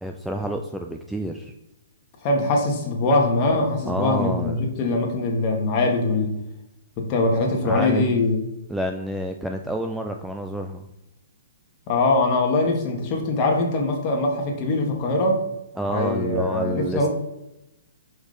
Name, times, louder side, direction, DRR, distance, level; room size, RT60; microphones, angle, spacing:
voice 1, 0.0-1.5 3.9-4.6 7.6-8.1 8.7-10.8 15.8-17.1, right 1 dB, ahead, 3 dB, 0.3 m, -29 dB
voice 2, 2.2-6.3 7.0-8.4 11.9-15.5 15.9-17.1, left 2 dB, 30° left, 1 dB, 1.4 m, -22 dB
5.1 x 4.1 x 5.0 m, 0.91 s
hypercardioid pair, 150°, 0 cm